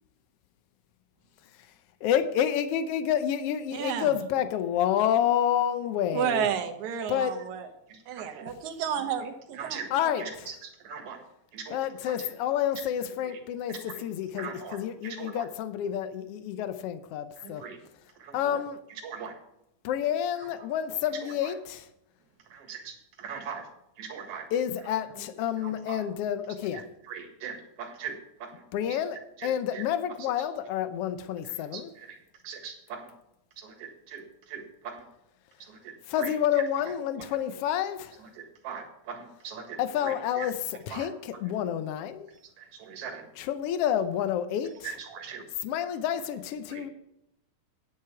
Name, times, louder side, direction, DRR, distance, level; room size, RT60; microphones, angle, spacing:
voice 1, 2.0-6.5 7.1-7.4 9.9-10.2 11.7-17.6 18.3-18.8 19.8-21.9 24.5-26.8 28.7-31.9 36.1-38.2 39.8-40.5 40.9-42.3 43.4-44.9 45.6-46.9, left 10 dB, 80° left, 11 dB, 1.4 m, -29 dB
voice 2, 3.7-4.1 6.1-7.7 8.1-9.8, right 8 dB, 75° right, 6 dB, 2.3 m, -31 dB
voice 3, 7.9-8.5 8.9-9.9 10.2-11.2 11.5-12.3 13.2-13.4 13.7-14.0 14.3-15.5 17.4-17.8 18.2-18.6 18.9-19.4 20.3-20.7 21.2-21.5 22.5-23.7 24.0-24.5 25.5-26.0 26.7-28.6 28.9-29.1 29.4-29.8 30.2-30.4 31.5-32.2 32.4-33.1 33.6-35.0 35.6-36.9 37.2-37.3 38.2-40.5 40.9-41.1 42.6-43.3 44.8-45.5 46.7-46.9, right 6 dB, 55° right, 3 dB, 2.5 m, -41 dB
10.0 x 8.0 x 4.7 m, 0.82 s
omnidirectional pair, 3.5 m